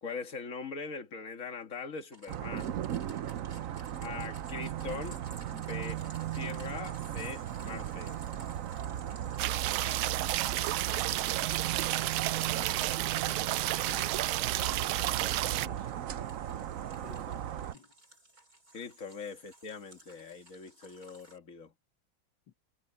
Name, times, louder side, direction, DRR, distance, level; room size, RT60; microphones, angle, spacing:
voice 1, 0.0-2.8 4.0-5.2 5.5-6.0 6.3-8.2 18.7-21.7, left 5 dB, 40° left, 2.0 m, -41 dB
sound 1, 2.1-21.4, right 2 dB, 45° right, 8.3 m, -56 dB
sound 2, 2.3-17.7, right 11 dB, 65° right, 0.8 m, -37 dB
sound 3, 9.4-15.7, right 15 dB, 85° right, 1.4 m, -31 dB
voice 2, 12.5-15.1 15.6-16.1 16.4-16.7 17.0-17.5 17.7-17.9 22.5-22.6, left 8 dB, 65° left, 2.1 m, -54 dB
omnidirectional pair, 2.2 m